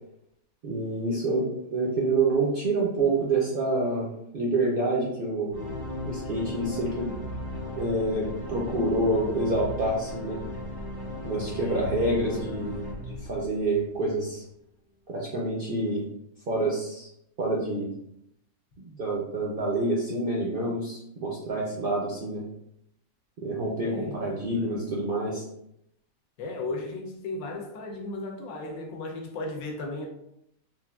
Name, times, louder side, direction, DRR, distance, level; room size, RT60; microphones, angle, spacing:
voice 1, 0.6-5.5 6.0-7.1 7.8-10.4 11.2-14.4 15.1-16.1 16.5-17.1 17.4-18.0 19.0-22.4 23.4-25.4, right 2 dB, 65° right, -4 dB, 0.5 m, -27 dB
sound 1, 5.5-14.0, left 1 dB, 25° left, 0.5 m, -36 dB
voice 2, 11.6-11.9 12.2-12.4 23.8-24.8 26.4-30.1, left 2 dB, 75° left, 2 dB, 1.0 m, -36 dB
3.5 x 2.4 x 2.2 m, 0.77 s
omnidirectional pair, 1.5 m